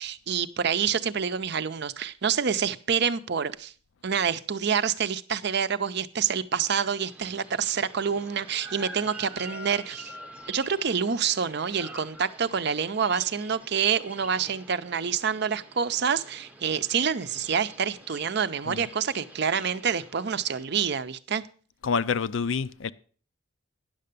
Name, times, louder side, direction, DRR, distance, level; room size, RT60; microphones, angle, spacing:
voice 1, 0.0-3.7 4.0-10.1 10.5-21.4, right 7 dB, 55° right, 0.6 m, -27 dB
sound 1, 6.7-20.7, right 2 dB, 5° right, 0.7 m, -46 dB
voice 2, 21.8-22.9, left 5 dB, 70° left, 0.5 m, -27 dB
10.0 x 6.7 x 6.7 m
head